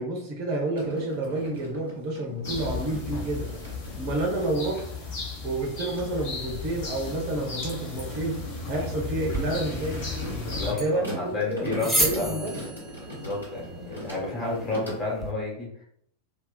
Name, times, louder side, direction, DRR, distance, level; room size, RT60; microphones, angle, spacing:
voice 1, 0.0-3.5 4.0-4.8 5.4-8.4 8.7-10.0 10.5-12.6, right 2 dB, 45° right, 1 dB, 0.5 m, -29 dB
sound 1, 0.7-4.9 5.5-14.9, equal, 85° left, 1.2 m, -41 dB
sound 2, 2.4-10.7, left 4 dB, 45° left, 0.9 m, -35 dB
sound 3, 9.3-15.3, right 1 dB, 5° left, 0.5 m, -33 dB
voice 2, 10.4-12.5 13.1-15.8, left 3 dB, 25° left, -4 dB, 1.0 m, -31 dB
2.3 x 2.3 x 2.3 m, 0.67 s
figure-of-eight pair, 90°, 0 cm